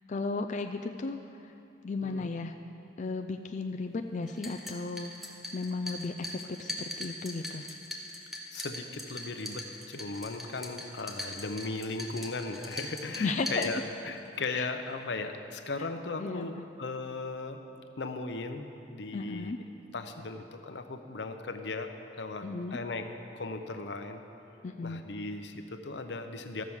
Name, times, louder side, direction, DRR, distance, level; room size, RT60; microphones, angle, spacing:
voice 1, 0.1-1.2 1.4-1.5 1.8-2.6 3.0-7.7 13.2-13.7 14.5-14.7 16.2-16.5 19.1-19.6 22.4-22.8 24.6-25.0, left 3 dB, 45° left, 5 dB, 0.4 m, -35 dB
voice 2, 2.0-2.4 8.5-17.6 18.0-19.5 19.9-23.1 23.3-24.2 24.8-26.6, left 3 dB, 80° left, 7 dB, 0.7 m, -37 dB
sound 1, 4.3-14.3, left 1 dB, ahead, 1.0 m, -42 dB
13.0 x 6.2 x 7.1 m, 2.8 s
head